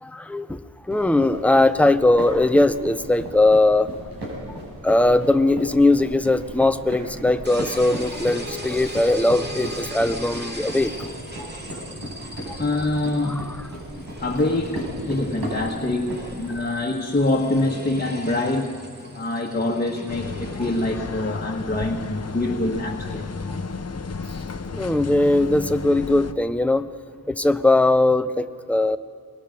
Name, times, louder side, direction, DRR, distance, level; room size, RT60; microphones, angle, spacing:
voice 1, 0.0-3.9 4.8-10.9 11.4-11.5 13.2-13.7 24.7-26.9 27.3-29.0, left 2 dB, 5° left, 11 dB, 0.6 m, -20 dB
sound 1, 0.9-16.6, equal, 90° right, 7.2 m, -35 dB
sound 2, 7.4-20.9, equal, 30° right, 2.6 m, -38 dB
voice 2, 12.6-18.8 19.1-23.2, left 2 dB, 25° left, 0 dB, 1.4 m, -25 dB
sound 3, 20.1-26.3, left 4 dB, 45° left, 1.0 m, -33 dB
23.5 x 21.0 x 5.2 m, 2.3 s
wide cardioid pair, 105°, 36 cm